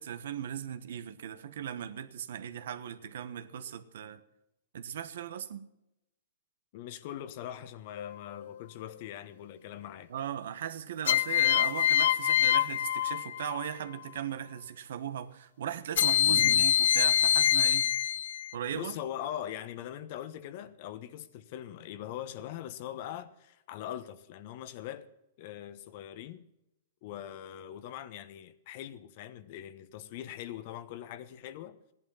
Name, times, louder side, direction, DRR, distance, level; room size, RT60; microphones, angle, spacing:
voice 1, 0.0-4.2 4.7-5.7 10.1-17.9 18.5-19.0, right 9 dB, 75° right, 1.2 m, -38 dB
voice 2, 6.7-10.1 16.2-16.7 18.7-25.1 25.4-26.4 27.0-31.8, left 11 dB, 50° left, 1.1 m, -42 dB
sound 1, 8.0-8.5 11.1-13.7 16.0-18.5, left 11 dB, 70° left, 0.4 m, -25 dB
15.0 x 11.0 x 5.7 m
hypercardioid pair, 145°, 0 cm